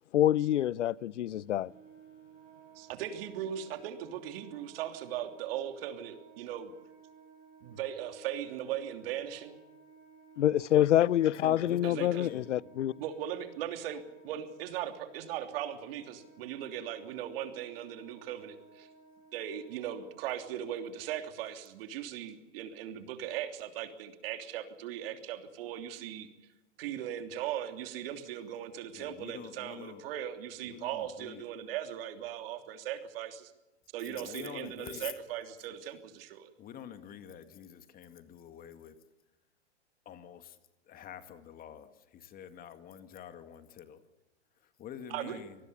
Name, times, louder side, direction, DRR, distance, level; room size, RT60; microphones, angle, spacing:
voice 1, 0.1-1.7 10.4-12.9, left 12 dB, 80° left, 0.7 m, -26 dB
Wind instrument woodwind instrument, 1.6-21.1, right 5 dB, 25° right, 7.0 m, -57 dB
voice 2, 2.7-6.7 7.6-9.6 11.8-12.3 13.0-18.9 19.3-26.3 26.8-33.5 33.9-36.5 45.1-45.4, right 10 dB, 55° right, 3.2 m, -38 dB
voice 3, 11.4-12.7 28.9-30.0 30.6-31.4 34.0-35.1 36.6-38.9 40.1-40.6 40.9-44.0 44.8-45.6, left 9 dB, 25° left, 2.0 m, -47 dB
25.5 x 19.0 x 7.0 m
hypercardioid pair, 130°, 35 cm